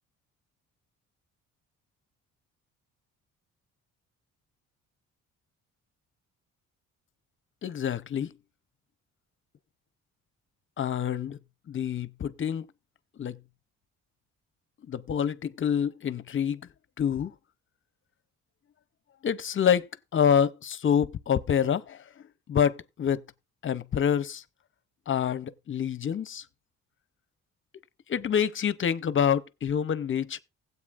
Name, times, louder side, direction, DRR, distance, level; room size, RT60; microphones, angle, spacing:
voice 1, 7.6-8.3 10.8-11.4 11.7-12.7 13.2-13.4 14.9-16.6 17.0-17.3 19.2-22.0 22.5-23.2 23.6-24.4 25.1-26.4 28.1-30.4, left 8 dB, 40° left, 0.7 m, -27 dB
16.5 x 8.2 x 2.5 m
cardioid pair, 90°, 30 cm